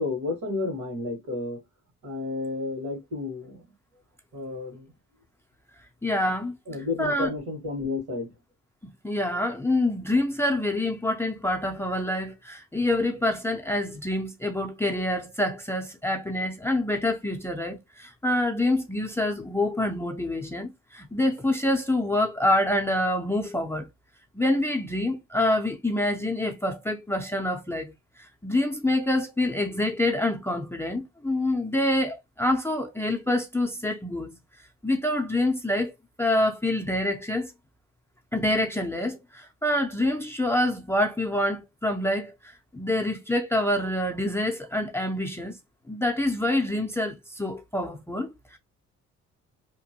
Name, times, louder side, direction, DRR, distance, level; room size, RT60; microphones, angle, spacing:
voice 1, 0.0-1.6 2.0-3.6 4.3-4.8 6.7-8.3, left 3 dB, 75° right, 1.7 m, -31 dB
voice 2, 6.0-6.5 7.0-7.3 9.0-23.9 24.3-27.9 28.2-34.4 34.8-35.9 36.2-37.5 38.3-42.3 42.7-45.5 45.9-48.6, left 1 dB, 10° left, 0.5 m, -26 dB
2.9 x 2.1 x 2.8 m
cardioid pair, 90°, 30 cm